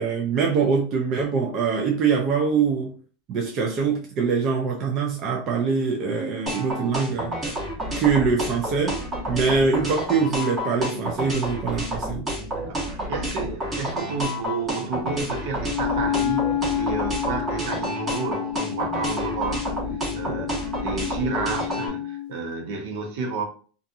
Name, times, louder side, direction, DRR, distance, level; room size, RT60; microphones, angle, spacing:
voice 1, 0.0-2.9 3.3-7.3 8.0-8.9 9.3-12.3 20.3-20.4, right 5 dB, 40° right, 0.5 m, -23 dB
sound 1, 6.5-21.9, equal, 20° right, 1.1 m, -29 dB
voice 2, 12.6-19.8 20.1-23.4, right 4 dB, 70° right, 0.8 m, -31 dB
Wind instrument woodwind instrument, 15.7-22.3, left 11 dB, 55° left, 0.3 m, -29 dB
2.6 x 2.4 x 2.6 m
supercardioid pair, 130°, 0 cm